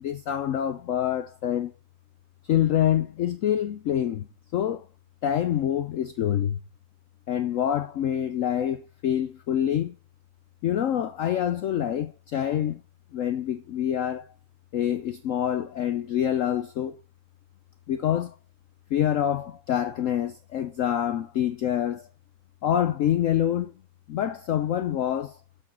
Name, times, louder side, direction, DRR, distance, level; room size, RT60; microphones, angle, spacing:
voice 1, 0.0-1.7 2.5-4.3 4.5-4.8 5.2-6.6 7.3-10.0 10.6-12.8 13.1-14.2 14.7-17.0 17.9-18.3 18.9-22.1 22.6-23.7 24.1-25.4, left 10 dB, 85° left, 0.7 m, -26 dB
8.0 x 6.1 x 4.2 m
omnidirectional pair, 2.0 m